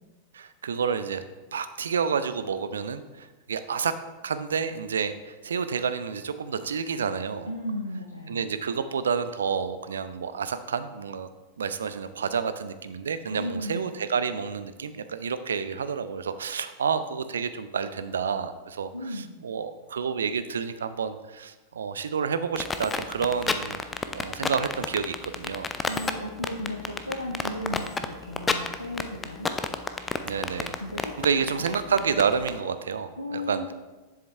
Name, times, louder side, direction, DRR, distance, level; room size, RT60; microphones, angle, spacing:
voice 1, 0.3-1.2 1.5-4.0 4.2-7.5 8.3-11.3 11.6-23.8 24.1-25.7 30.2-33.7, right 6 dB, 70° right, 12 dB, 0.4 m, -29 dB
voice 2, 7.5-8.4 13.3-13.9 18.9-19.3 25.9-29.5 30.8-31.6 33.2-33.7, left 1 dB, 85° left, 1 dB, 0.6 m, -35 dB
sound 1, 22.6-32.5, left 4 dB, 15° left, 0.4 m, -29 dB
7.4 x 7.0 x 3.4 m, 1.2 s
figure-of-eight pair, 90°, 0 cm